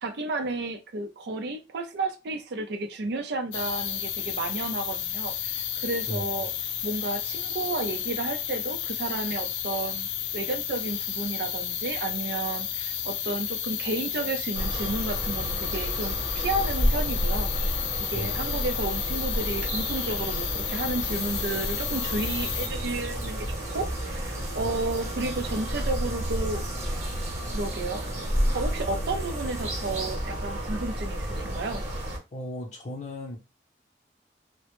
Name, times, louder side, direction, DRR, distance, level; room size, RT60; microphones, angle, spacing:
voice 1, 0.0-6.5 6.8-10.1 10.3-17.5 18.0-27.0 27.5-28.1 28.5-31.8, right 2 dB, 70° right, 0.4 m, -32 dB
sound 1, 3.5-22.7, left 10 dB, 90° left, 0.3 m, -32 dB
sound 2, 14.5-32.2, equal, 45° right, 0.9 m, -31 dB
Frying (food), 21.1-30.2, right 1 dB, 15° right, 0.5 m, -41 dB
voice 2, 32.3-33.4, left 1 dB, 40° left, 0.6 m, -36 dB
2.1 x 2.0 x 2.9 m
head